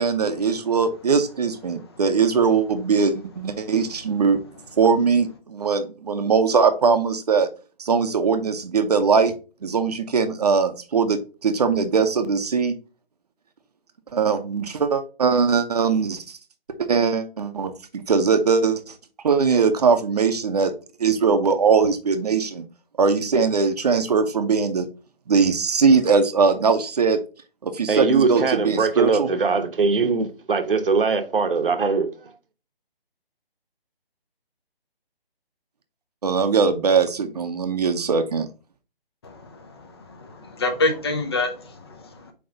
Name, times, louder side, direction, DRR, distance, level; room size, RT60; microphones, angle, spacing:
voice 1, 0.0-4.4 4.8-7.5 7.8-9.3 9.6-12.7 14.1-16.4 16.8-18.9 19.2-20.7 21.0-22.6 23.0-24.9 25.3-27.2 27.6-29.3 36.2-38.5, right 5 dB, 40° right, 0.9 m, -21 dB
voice 2, 27.9-32.1, right 4 dB, 65° right, 1.1 m, -21 dB
voice 3, 39.2-42.3, left 2 dB, 25° left, 0.8 m, -27 dB
8.0 x 3.1 x 3.9 m
figure-of-eight pair, 155°, 30 cm